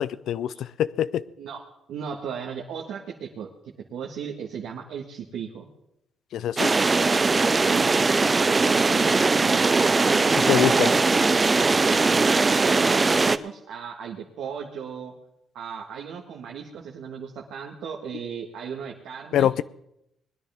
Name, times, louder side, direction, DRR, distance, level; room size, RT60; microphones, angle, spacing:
voice 1, 0.0-1.2 6.3-6.7 10.5-10.9 19.3-19.6, left 10 dB, 75° left, 18 dB, 0.5 m, -24 dB
voice 2, 1.9-3.5 3.9-5.7 7.7-11.1 11.8-15.1 15.5-19.5, right 7 dB, 80° right, -2 dB, 1.6 m, -36 dB
sound 1, 6.6-13.4, right 3 dB, 25° right, 0.5 m, -20 dB
20.5 x 10.5 x 3.5 m, 0.79 s
cardioid pair, 90°, 0 cm